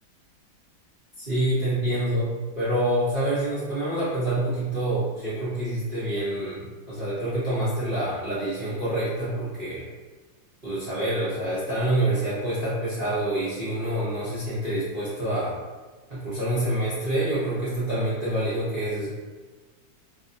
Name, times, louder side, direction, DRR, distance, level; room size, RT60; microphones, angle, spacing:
voice 1, 1.2-9.8 10.6-15.5 16.1-19.1, right 1 dB, 50° right, -12 dB, 0.6 m, -27 dB
3.2 x 2.5 x 2.6 m, 1.3 s
omnidirectional pair, 2.2 m